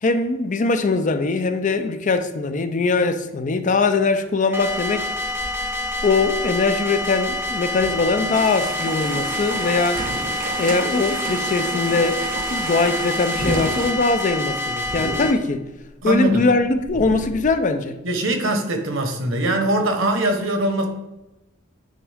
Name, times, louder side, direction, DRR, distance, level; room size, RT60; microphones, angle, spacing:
voice 1, 0.0-5.1 6.0-10.0 10.6-15.6 16.0-18.0, left 3 dB, 40° left, 0.4 m, -21 dB
sound 1, 4.5-15.3, left 2 dB, 10° right, 0.7 m, -27 dB
sound 2, 4.8-9.5 9.8-11.1 11.4-11.5 11.7-17.5, equal, 60° left, 2.3 m, -34 dB
sound 3, 8.3-13.9, right 6 dB, 40° right, 0.5 m, -32 dB
voice 2, 16.0-16.5 18.0-20.9, right 1 dB, 65° right, 1.1 m, -22 dB
9.0 x 3.5 x 3.5 m
head